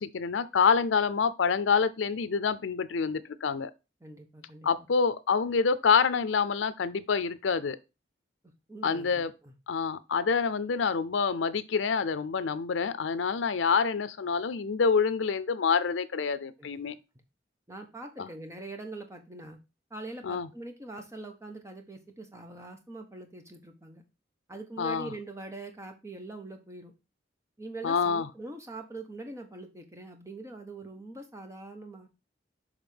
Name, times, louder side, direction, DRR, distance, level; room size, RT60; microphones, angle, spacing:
voice 1, 0.0-3.7 4.6-7.8 8.8-9.3 9.7-16.9 18.2-18.3 20.2-20.5 24.8-25.1 27.8-28.3, left 5 dB, 85° left, 0.5 m, -27 dB
voice 2, 4.0-4.7 8.7-9.5 16.6-16.7 17.7-19.6 19.9-24.0 24.5-26.9 27.6-32.1, right 2 dB, 15° right, 1.0 m, -43 dB
6.6 x 3.5 x 5.1 m
head